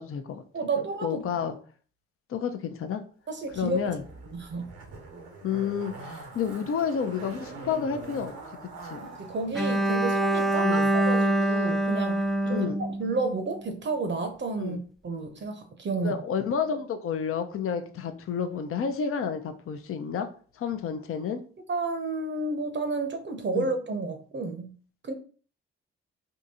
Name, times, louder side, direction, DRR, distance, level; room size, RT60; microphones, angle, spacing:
voice 1, 0.0-0.4 1.0-1.6 2.3-3.0 3.6-4.0 5.4-8.3 8.8-9.1 10.6-10.9 12.5-12.8 14.6-14.8 16.0-20.3 20.6-21.4 23.5-23.7, left 7 dB, 50° left, 8 dB, 0.5 m, -30 dB
voice 2, 0.5-1.4 3.3-3.9 4.3-4.7 9.0-16.2 21.7-24.7 25.0-25.1, right 3 dB, 40° right, 7 dB, 0.7 m, -31 dB
Zipper (clothing), 3.5-11.1 11.4-11.5, right 3 dB, 90° right, 0.8 m, -44 dB
Bowed string instrument, 9.5-13.6, right 1 dB, ahead, 0.3 m, -25 dB
3.6 x 2.6 x 2.7 m, 0.41 s
hypercardioid pair, 45°, 29 cm